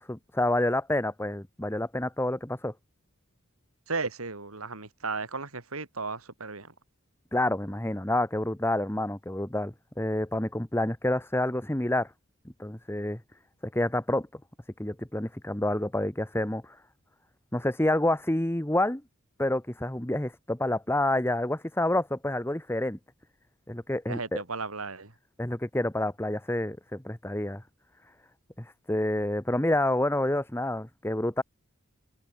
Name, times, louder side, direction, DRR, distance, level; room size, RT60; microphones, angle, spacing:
voice 1, 0.0-2.7 7.3-12.1 12.6-13.2 13.7-14.3 14.8-16.8 17.5-19.0 19.4-23.0 23.7-24.4 25.4-27.6 28.6-31.4, left 1 dB, 10° left, 1.4 m, -28 dB
voice 2, 3.9-6.7 24.1-25.1, right 4 dB, 90° right, 3.3 m, -35 dB
head